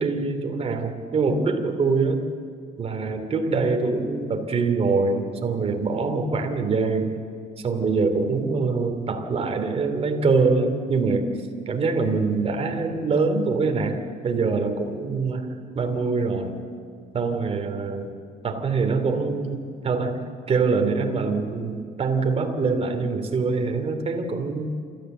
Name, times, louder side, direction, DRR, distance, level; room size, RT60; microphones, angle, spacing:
voice 1, 0.0-2.3 2.8-7.2 7.6-11.3 11.7-16.6 17.1-18.1 18.4-20.2 20.5-24.7, right 4 dB, 35° right, 5 dB, 2.7 m, -24 dB
28.5 x 13.5 x 7.9 m, 2.2 s
cardioid pair, 110°, 17 cm